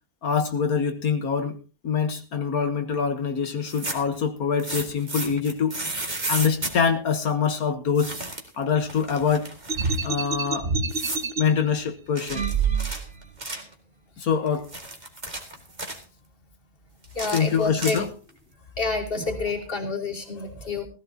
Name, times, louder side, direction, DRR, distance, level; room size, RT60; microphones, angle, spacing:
voice 1, 0.2-1.6 1.8-5.7 6.3-8.2 8.6-9.5 10.0-10.7 11.4-12.5 14.2-14.7 17.3-18.1, left 6 dB, 75° left, 8 dB, 1.7 m, -24 dB
sound 1, 3.6-4.2 4.6-6.8 8.0-8.6 8.9-10.1 10.9-11.3 12.2-13.7 14.5-16.0 17.0-18.3, right 2 dB, 30° right, 2.2 m, -33 dB
sound 2, 9.7-11.4 12.3-13.3, right 5 dB, 45° right, 1.2 m, -26 dB
voice 2, 17.1-18.0 18.8-20.9, left 3 dB, 35° left, 1 dB, 2.9 m, -28 dB
17.0 x 15.0 x 2.8 m, 0.32 s
omnidirectional pair, 1.6 m